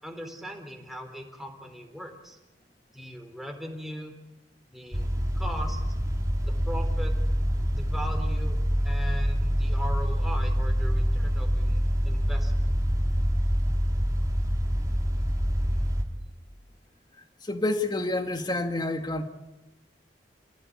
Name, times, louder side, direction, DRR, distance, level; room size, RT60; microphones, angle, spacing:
voice 1, 0.0-2.4 2.9-4.2 4.7-5.1 5.4-5.8 6.5-7.1 7.7-8.6 8.8-12.7, equal, ahead, 3.8 m, -39 dB
sound 1, 4.9-16.0, equal, 20° right, 3.4 m, -26 dB
voice 2, 17.4-19.2, left 2 dB, 25° left, 2.1 m, -28 dB
29.0 x 17.0 x 8.6 m
head